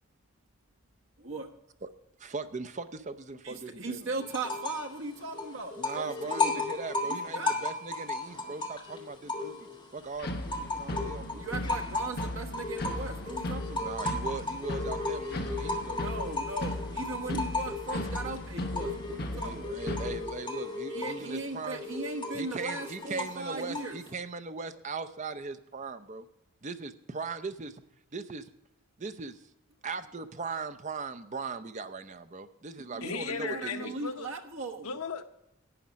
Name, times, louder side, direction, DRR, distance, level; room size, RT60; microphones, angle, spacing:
voice 1, 2.2-4.3 5.8-9.5 9.9-11.5 13.8-16.0 19.1-21.8 22.3-26.3 26.6-27.8 28.1-28.5 29.0-29.4 29.8-34.0, right 4 dB, 35° right, 11 dB, 0.5 m, -39 dB
voice 2, 3.4-6.6 7.3-7.6 10.4-10.9 11.3-13.9 15.6-19.8 20.9-24.0 32.9-34.9, right 3 dB, 60° right, 4 dB, 1.2 m, -38 dB
sound 1, 4.3-4.9 5.2-9.8 10.2-24.1, left 2 dB, 20° left, 1.6 m, -35 dB
sound 2, 10.2-20.3, left 1 dB, 45° left, 1.1 m, -37 dB
voice 3, 33.0-34.3 34.8-35.2, left 5 dB, 80° left, 7 dB, 0.9 m, -36 dB
11.5 x 8.4 x 5.2 m, 0.86 s
head